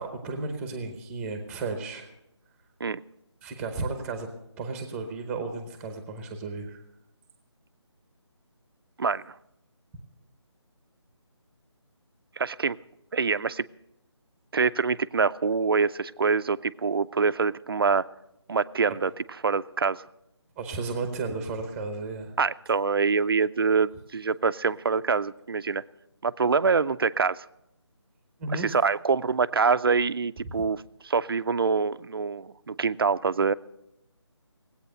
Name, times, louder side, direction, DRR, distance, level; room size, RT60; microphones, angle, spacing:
voice 1, 0.0-2.1 3.4-4.3 4.6-6.8 20.6-22.3 28.4-28.7, right 3 dB, 5° right, 7 dB, 0.8 m, -33 dB
voice 2, 12.4-12.8 13.1-13.6 14.5-18.1 18.5-19.1 19.4-20.0 22.4-25.8 26.2-27.5 28.5-33.5, right 5 dB, 50° right, 16 dB, 0.4 m, -25 dB
18.5 x 8.6 x 6.5 m, 0.85 s
figure-of-eight pair, 165°, 15 cm